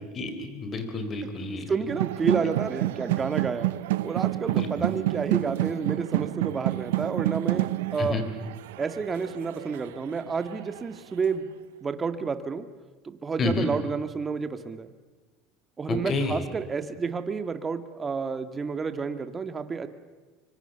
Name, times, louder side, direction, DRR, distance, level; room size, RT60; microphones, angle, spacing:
voice 1, 0.1-1.7 4.5-4.7 8.0-8.2 13.4-13.7 15.9-16.4, left 3 dB, 35° left, 8 dB, 4.4 m, -29 dB
voice 2, 1.7-3.7 4.0-8.2 8.8-11.5 11.8-12.7 13.0-14.9 15.8-19.9, right 5 dB, 25° right, 9 dB, 1.9 m, -30 dB
sound 1, 1.9-10.8, right 17 dB, 85° right, 0.7 m, -29 dB
25.0 x 24.0 x 6.9 m, 1.4 s
supercardioid pair, 110°, 0 cm